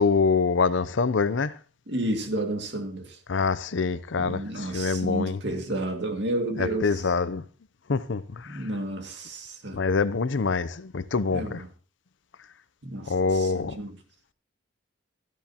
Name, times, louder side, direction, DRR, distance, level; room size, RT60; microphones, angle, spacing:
voice 1, 0.0-1.6 3.3-5.4 6.6-7.4 7.9-8.7 9.7-11.6 13.1-13.8, left 4 dB, 75° left, 0.6 m, -25 dB
voice 2, 1.9-3.2 4.2-6.9 8.5-9.8 11.3-11.7 12.8-14.0, right 1 dB, 60° right, 2.2 m, -31 dB
16.0 x 13.0 x 2.9 m
head